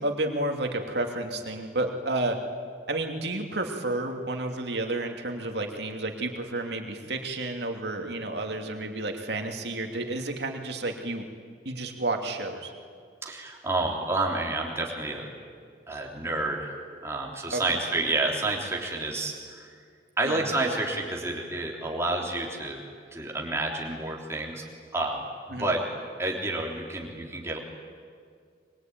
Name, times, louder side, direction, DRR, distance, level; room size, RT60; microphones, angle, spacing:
voice 1, 0.0-2.4 2.9-11.3 11.6-12.7 17.5-17.8 20.2-20.5 25.5-25.7, right 2 dB, 60° right, 3 dB, 2.7 m, -31 dB
voice 2, 13.2-15.3 15.9-19.7 20.2-22.8 23.1-24.6 24.9-25.2 25.6-25.8 26.2-27.6, right 2 dB, 15° right, -1 dB, 3.6 m, -29 dB
23.5 x 23.5 x 9.4 m, 2.1 s
head